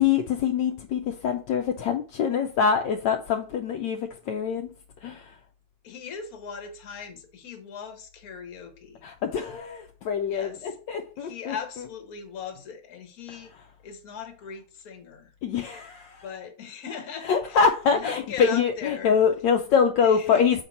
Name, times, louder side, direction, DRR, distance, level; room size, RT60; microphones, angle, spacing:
voice 1, 0.0-4.7 5.0-5.3 9.0-11.5 15.4-16.2 17.2-20.6, left 6 dB, 75° left, 1.2 m, -24 dB
voice 2, 5.8-9.0 10.3-10.8 11.2-13.5 13.8-15.3 16.2-19.2 20.0-20.4, left 7 dB, 55° left, 1.4 m, -39 dB
6.6 x 4.4 x 4.1 m
omnidirectional pair, 2.0 m